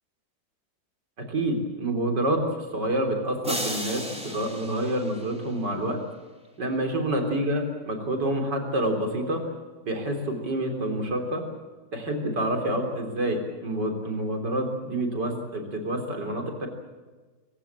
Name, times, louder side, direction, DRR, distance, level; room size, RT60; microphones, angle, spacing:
voice 1, 1.2-6.0 6.6-9.4 9.8-11.4 11.9-16.7, right 1 dB, 65° right, 3 dB, 4.3 m, -28 dB
sound 1, 3.4-5.8, equal, 5° right, 3.6 m, -35 dB
25.5 x 16.0 x 8.9 m, 1.3 s
omnidirectional pair, 2.0 m